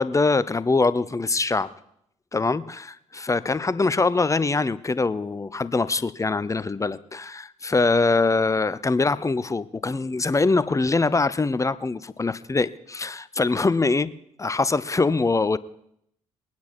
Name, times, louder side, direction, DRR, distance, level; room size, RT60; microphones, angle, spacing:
voice 1, 0.0-1.7 2.3-14.1 14.4-15.6, left 3 dB, 20° left, 16 dB, 0.7 m, -23 dB
21.5 x 9.5 x 4.5 m, 0.73 s
hypercardioid pair, 50°, 17 cm